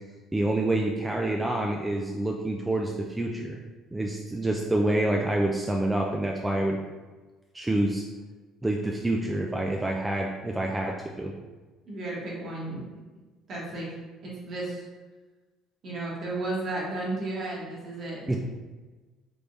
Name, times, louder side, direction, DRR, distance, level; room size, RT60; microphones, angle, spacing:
voice 1, 0.3-3.6 3.9-6.8 7.5-8.0 8.6-11.3 18.3-18.4, right 1 dB, 10° right, 0 dB, 0.3 m, -27 dB
voice 2, 11.9-12.8 13.5-13.9 14.2-14.8 15.8-18.2, right 2 dB, 50° right, -5 dB, 1.3 m, -33 dB
3.5 x 3.2 x 2.6 m, 1.3 s
supercardioid pair, 90°, 0 cm